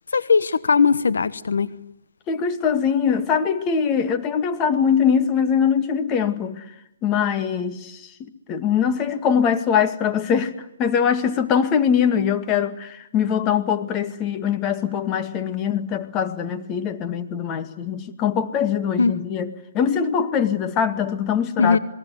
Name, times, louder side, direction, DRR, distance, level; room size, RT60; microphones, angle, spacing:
voice 1, 0.1-1.7 19.0-19.2 21.6-21.8, left 5 dB, 75° left, 14 dB, 1.2 m, -19 dB
voice 2, 2.3-6.6 7.0-10.5 10.8-21.8, left 7 dB, 20° left, 8 dB, 2.1 m, -22 dB
28.0 x 21.5 x 9.5 m, 0.80 s
hypercardioid pair, 150°, 0 cm